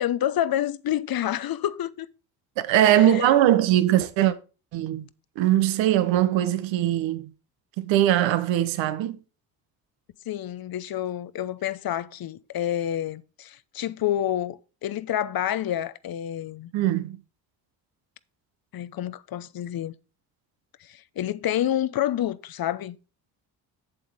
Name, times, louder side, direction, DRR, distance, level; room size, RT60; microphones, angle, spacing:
voice 1, 0.0-2.1 2.7-3.4 10.3-16.7 18.7-19.9 20.8-23.0, left 11 dB, 50° left, 0.8 m, -28 dB
voice 2, 2.6-4.3 4.7-5.1 5.4-7.3 7.8-9.2 16.7-17.2, right 12 dB, 75° right, 1.1 m, -21 dB
7.7 x 7.7 x 3.5 m
supercardioid pair, 60°, 46 cm